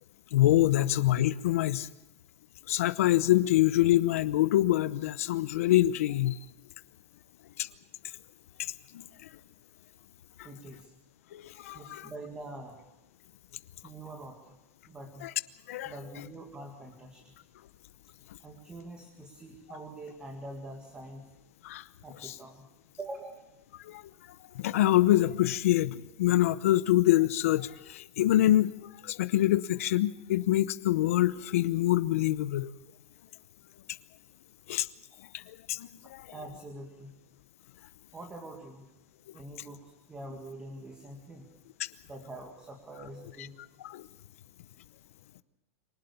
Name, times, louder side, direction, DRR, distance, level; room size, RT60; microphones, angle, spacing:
voice 1, 0.3-1.9 2.7-6.4 7.6-7.7 8.6-8.7 11.3-12.1 15.2-15.3 15.7-15.9 21.6-21.8 22.2-22.3 23.8-24.0 24.5-32.7 34.7-34.9 35.3-36.2 43.8-44.1, left 14 dB, 70° left, 14 dB, 0.8 m, -25 dB
voice 2, 10.4-10.9 11.7-12.8 13.8-14.6 14.9-15.3 15.8-17.3 18.4-21.3 22.0-22.7 23.0-23.4 36.3-37.1 38.1-38.9 39.3-41.5 42.0-43.6, right 2 dB, 10° right, 3 dB, 2.1 m, -44 dB
25.0 x 19.0 x 7.0 m, 0.94 s
supercardioid pair, 165°, 8 cm